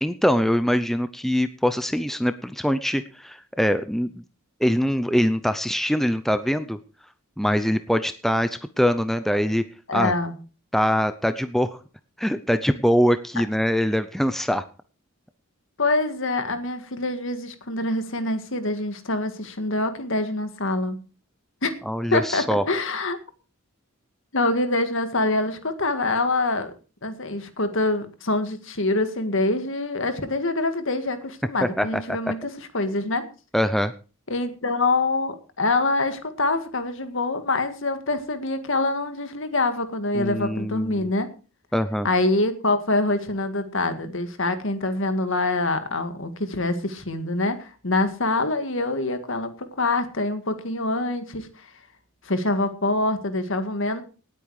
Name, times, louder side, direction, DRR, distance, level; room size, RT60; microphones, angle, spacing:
voice 1, 0.0-4.2 4.6-6.8 7.4-9.6 9.9-10.1 10.7-11.8 12.2-14.6 21.9-22.6 31.6-32.0 33.5-33.9 40.1-41.1 41.7-42.1, equal, ahead, 11 dB, 0.6 m, -23 dB
voice 2, 9.9-10.3 15.8-21.0 21.6-21.8 22.1-23.2 24.3-26.7 27.0-33.3 34.3-41.3 42.0-51.5 52.3-54.0, left 2 dB, 60° left, 9 dB, 1.9 m, -25 dB
18.5 x 8.7 x 4.9 m, 0.35 s
head